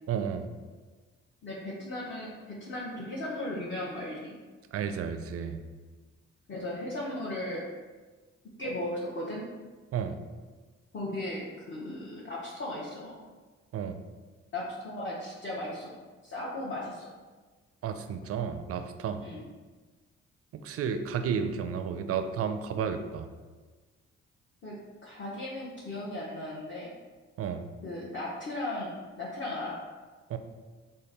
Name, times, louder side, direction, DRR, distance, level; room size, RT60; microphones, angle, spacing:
voice 1, 0.1-0.5 4.7-5.6 9.9-10.2 13.7-14.0 17.8-19.2 20.5-23.3 27.4-27.7 30.3-30.4, right 7 dB, 45° right, 8 dB, 0.4 m, -32 dB
voice 2, 1.4-4.4 6.5-7.6 8.6-9.4 10.9-13.2 14.5-15.9 16.2-17.1 19.2-19.5 24.6-24.8 25.0-27.0 27.8-29.8, left 1 dB, 35° left, -6 dB, 0.9 m, -36 dB
3.4 x 2.2 x 4.1 m, 1.4 s
hypercardioid pair, 45°, 34 cm